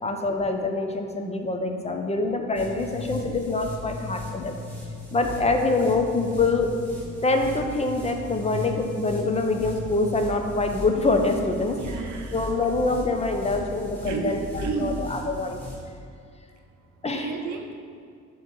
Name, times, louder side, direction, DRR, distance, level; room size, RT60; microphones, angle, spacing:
voice 1, 0.0-4.6 5.1-6.7 7.2-11.8 12.3-14.4 14.8-15.6 17.0-17.3, left 3 dB, 20° left, 4 dB, 0.6 m, -25 dB
sound 1, 2.5-15.8, left 1 dB, 5° left, 1.7 m, -37 dB
voice 2, 11.8-12.4 14.0-15.4 16.5-17.7, right 4 dB, 75° right, 4 dB, 0.7 m, -33 dB
6.8 x 3.1 x 6.0 m, 2.3 s
cardioid pair, 90°, 30 cm